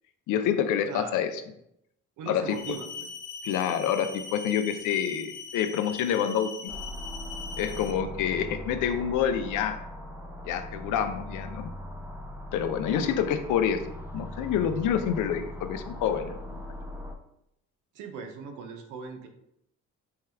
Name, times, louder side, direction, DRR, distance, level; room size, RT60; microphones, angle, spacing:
voice 1, 0.3-1.3 2.3-2.6 3.4-6.7 7.6-9.8 10.4-11.7 12.5-13.8 14.1-16.5, left 8 dB, 90° left, 8 dB, 0.5 m, -27 dB
voice 2, 0.9-1.2 2.2-3.1 12.9-13.3 17.9-19.3, right 5 dB, 90° right, 5 dB, 0.6 m, -39 dB
sound 1, 2.5-7.9, left 5 dB, 50° left, 1.3 m, -41 dB
sound 2, 6.7-17.2, left 1 dB, 10° right, 0.3 m, -40 dB
4.5 x 2.3 x 3.2 m, 0.78 s
cardioid pair, 90°, 30 cm